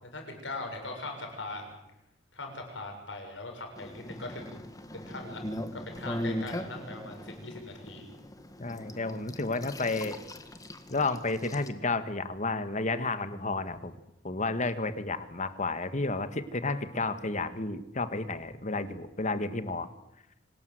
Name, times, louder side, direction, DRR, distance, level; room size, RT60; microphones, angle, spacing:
voice 1, 0.1-1.8 2.3-4.6 4.9-5.4 5.7-8.1, left 2 dB, 80° left, 3 dB, 7.2 m, -40 dB
sound 1, 3.8-11.7, left 1 dB, 20° left, 1.9 m, -40 dB
voice 2, 8.6-10.2 10.9-13.9 14.2-19.9, left 3 dB, 40° left, 11 dB, 1.7 m, -31 dB
26.0 x 19.5 x 8.0 m, 0.86 s
head